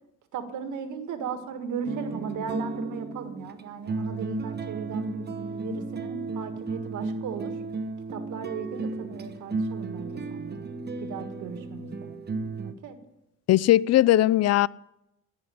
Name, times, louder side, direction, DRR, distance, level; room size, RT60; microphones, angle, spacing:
voice 1, 0.3-7.6 8.1-10.6 11.0-12.1 12.6-13.0, right 5 dB, 80° right, 1.8 m, -36 dB
sound 1, 1.9-12.7, right 3 dB, 35° right, 1.3 m, -34 dB
voice 2, 13.5-14.7, left 14 dB, 55° left, 0.4 m, -19 dB
16.0 x 6.4 x 9.9 m
cardioid pair, 90°, 30 cm